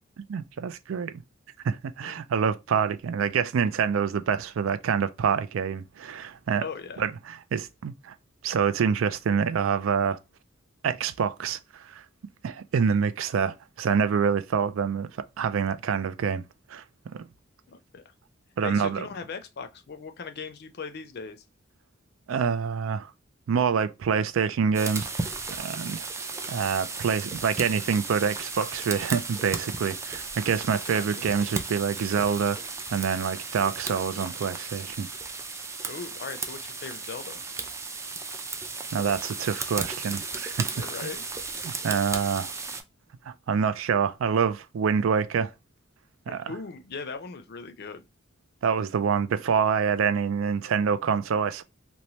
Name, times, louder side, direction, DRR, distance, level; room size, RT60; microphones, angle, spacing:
voice 1, 0.3-1.2 1.6-6.6 7.0-8.1 8.4-10.2 10.8-12.0 12.4-16.4 16.7-16.8 17.1-17.2 18.6-19.0 22.3-23.1 23.5-26.1 26.5-35.1 38.9-40.7 41.6-42.5 43.3-45.5 46.3-46.5 48.6-51.6, right 6 dB, 85° right, 0.4 m, -26 dB
voice 2, 6.6-7.1 17.7-18.1 18.6-21.4 30.9-31.2 35.8-37.4 40.7-41.2 46.3-48.0, left 5 dB, 55° left, 0.5 m, -39 dB
sound 1, 24.7-42.8, right 4 dB, 15° right, 0.3 m, -35 dB
3.0 x 2.2 x 2.7 m
head